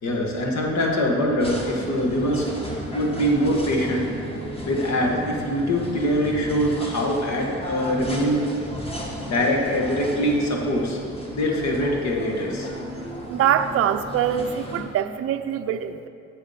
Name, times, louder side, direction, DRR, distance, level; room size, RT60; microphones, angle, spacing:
voice 1, 0.0-2.5 2.9-4.1 4.6-8.5 9.3-11.0 11.3-12.7, equal, 65° left, 0 dB, 1.6 m, -23 dB
sound 1, 1.4-14.8, equal, 20° left, 1.6 m, -34 dB
voice 2, 13.3-16.1, right 9 dB, 50° right, 8 dB, 0.4 m, -23 dB
7.5 x 6.5 x 5.1 m, 2.5 s
cardioid pair, 90°, 30 cm